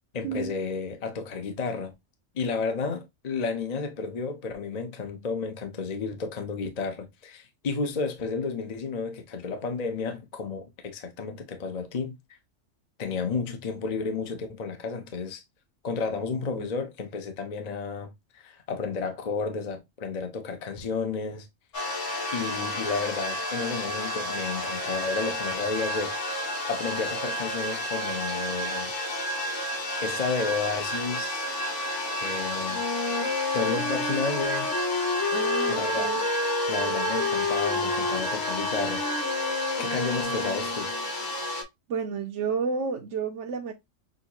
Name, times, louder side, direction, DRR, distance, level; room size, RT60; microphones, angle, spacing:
voice 1, 0.1-1.9 2.3-12.2 13.0-15.4 15.8-21.5 22.3-26.4 26.7-28.9 30.0-31.5 32.2-32.8 33.5-34.7 35.7-36.1 36.7-39.2 39.8-40.9, left 4 dB, 35° left, 0.8 m, -32 dB
sound 1, 21.7-41.6, left 1 dB, 75° left, 1.8 m, -31 dB
Wind instrument woodwind instrument, 32.7-41.0, left 3 dB, 55° left, 2.2 m, -30 dB
voice 2, 35.3-36.2 41.9-43.7, right 5 dB, 70° right, 1.0 m, -31 dB
6.4 x 2.5 x 2.9 m
omnidirectional pair, 1.3 m